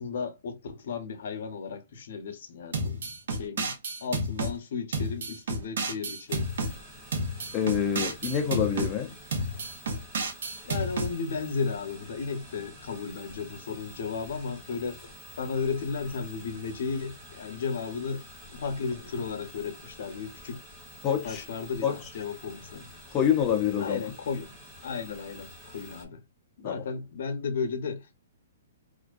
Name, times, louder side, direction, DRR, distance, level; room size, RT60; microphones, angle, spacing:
voice 1, 0.0-3.7 4.0-6.5 10.6-18.2 18.5-20.6 21.2-22.9 23.8-24.5 24.8-26.2 26.6-28.2, left 5 dB, 65° left, 0.7 m, -34 dB
sound 1, 2.7-4.5 4.9-6.7 7.1-8.9 9.3-11.1, right 2 dB, 70° right, 0.8 m, -31 dB
sound 2, 6.3-26.1, equal, 10° right, 1.0 m, -49 dB
voice 2, 7.5-9.2 21.0-21.4 21.8-22.0 23.1-24.0 26.6-26.8, left 8 dB, 20° left, 0.5 m, -26 dB
2.5 x 2.1 x 2.3 m
hypercardioid pair, 160°, 0 cm